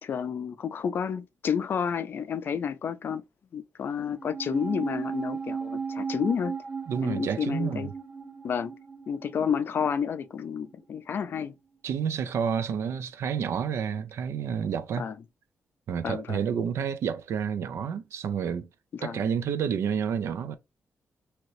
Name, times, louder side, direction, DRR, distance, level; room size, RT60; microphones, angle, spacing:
voice 1, 0.0-3.2 3.5-6.5 7.0-7.9 8.4-8.7 9.1-11.5 15.0-15.1 16.0-16.4 18.9-19.2, left 7 dB, 50° left, 0.4 m, -30 dB
sound 1, 4.2-10.7 11.0-11.1, right 5 dB, 25° right, 0.6 m, -36 dB
voice 2, 6.9-7.9 11.8-15.1 15.9-18.7 19.0-20.6, right 7 dB, 70° right, 0.4 m, -29 dB
2.8 x 2.6 x 3.0 m
wide cardioid pair, 155°, 5 cm